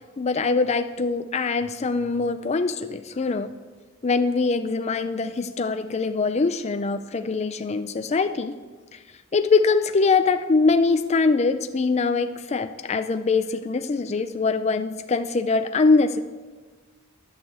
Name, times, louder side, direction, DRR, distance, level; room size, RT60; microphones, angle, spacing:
voice 1, 0.2-3.5 4.0-8.6 9.3-16.2, left 4 dB, 30° left, 9 dB, 0.4 m, -23 dB
11.5 x 6.7 x 7.8 m, 1.3 s
head